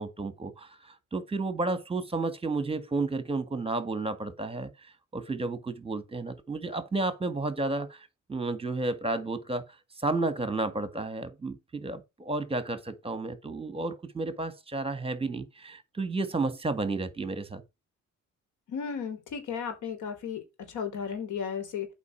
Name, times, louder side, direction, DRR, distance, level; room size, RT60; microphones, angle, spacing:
voice 1, 0.0-9.6 10.0-17.6, right 3 dB, 20° right, 1.8 m, -32 dB
voice 2, 18.7-20.4 20.7-21.9, left 7 dB, 80° left, 3.5 m, -34 dB
8.3 x 5.1 x 5.9 m
cardioid pair, 90°, 30 cm